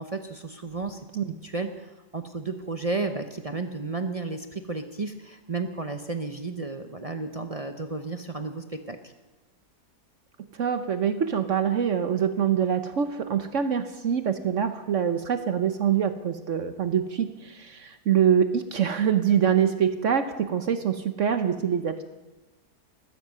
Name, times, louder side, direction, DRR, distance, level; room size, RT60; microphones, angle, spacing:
voice 1, 0.0-1.0 1.4-9.1, right 3 dB, 35° right, 7 dB, 0.6 m, -33 dB
voice 2, 10.5-22.1, right 8 dB, 55° right, 9 dB, 1.1 m, -25 dB
15.5 x 13.0 x 6.6 m, 1.1 s
omnidirectional pair, 1.7 m